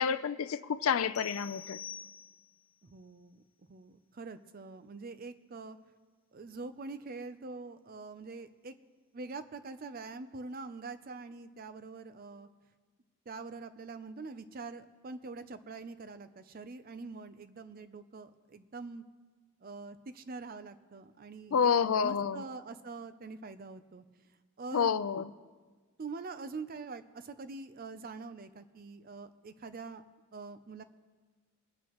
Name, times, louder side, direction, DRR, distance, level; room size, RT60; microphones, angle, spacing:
voice 1, 0.0-1.8 21.5-22.4 24.7-25.3, left 7 dB, 70° left, 0.4 m, -29 dB
sound 1, 1.2-2.7, left 8 dB, 85° left, 0.9 m, -46 dB
voice 2, 2.8-3.4 3.7-5.8 6.3-8.7 9.1-12.5 13.3-19.0 19.6-21.7 22.0-24.0 24.6-24.9 26.0-30.0 30.3-30.8, right 3 dB, 40° right, 0.5 m, -44 dB
23.5 x 8.3 x 3.0 m
head